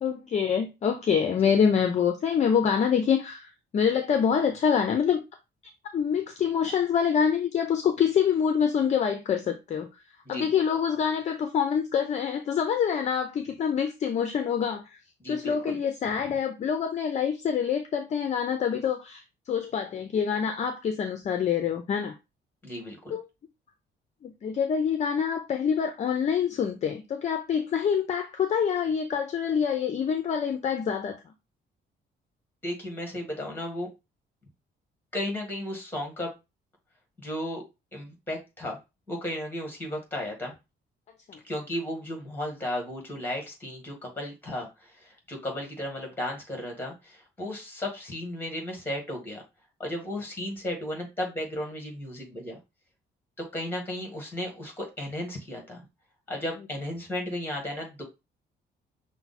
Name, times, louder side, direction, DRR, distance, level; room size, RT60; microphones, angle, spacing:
voice 1, 0.0-5.2 5.9-9.9 10.3-15.0 15.3-22.2 23.1-23.2 24.2-31.2 41.3-41.4, left 7 dB, 35° left, 0.5 m, -26 dB
voice 2, 15.2-15.7 22.6-23.1 32.6-33.9 35.1-36.3 37.2-37.6 37.9-38.8 39.1-40.5 41.4-49.4 49.8-52.6 53.5-55.8 56.3-58.0, left 1 dB, 10° left, 1.6 m, -34 dB
5.8 x 2.1 x 4.1 m
cardioid pair, 175°, 20 cm